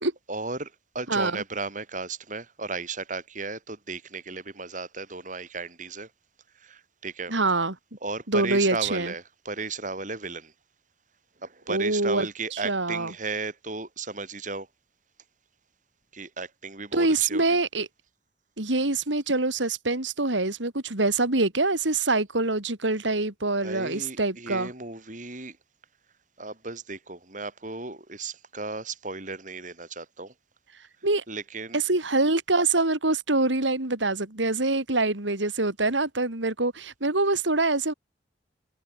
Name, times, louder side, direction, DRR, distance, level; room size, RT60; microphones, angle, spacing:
voice 1, 0.3-6.1 6.6-7.3 8.0-10.5 11.4-14.7 16.1-17.6 23.6-25.6 26.4-30.3 31.3-31.8, right 3 dB, 45° right, 5.0 m, -35 dB
voice 2, 1.1-1.4 7.3-7.7 8.3-9.1 11.7-12.3 12.5-13.1 16.9-17.9 18.6-24.7 31.0-31.2 31.7-37.9, right 2 dB, 85° right, 3.4 m, -25 dB
head